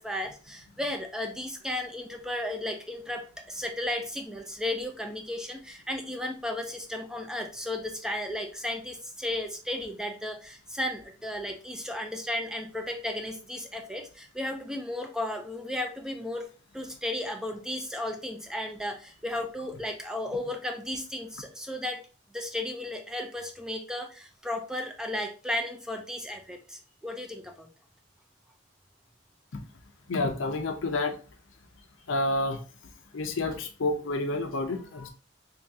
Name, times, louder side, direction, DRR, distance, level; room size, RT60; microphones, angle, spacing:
voice 1, 0.0-16.5 16.7-22.0 22.3-27.7 34.9-35.1, left 1 dB, 5° right, 0.4 m, -34 dB
voice 2, 30.1-31.2 32.1-32.6 33.1-35.1, left 2 dB, 90° left, 0.6 m, -29 dB
3.6 x 3.0 x 2.7 m
head